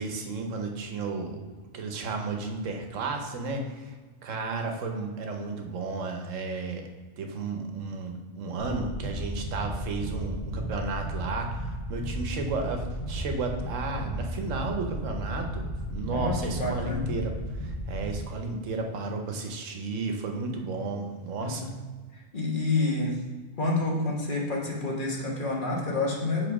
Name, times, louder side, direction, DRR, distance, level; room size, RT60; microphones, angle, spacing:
voice 1, 0.0-1.4 1.7-3.9 4.2-6.8 7.2-21.7, right 3 dB, 85° right, 3 dB, 1.2 m, -33 dB
sound 1, 8.6-18.1, equal, 70° left, 1.7 m, -34 dB
voice 2, 16.1-17.1 21.4-21.7 22.1-23.2 23.6-26.5, left 2 dB, 45° left, -2 dB, 1.4 m, -28 dB
7.2 x 3.7 x 4.8 m, 1.4 s
omnidirectional pair, 1.3 m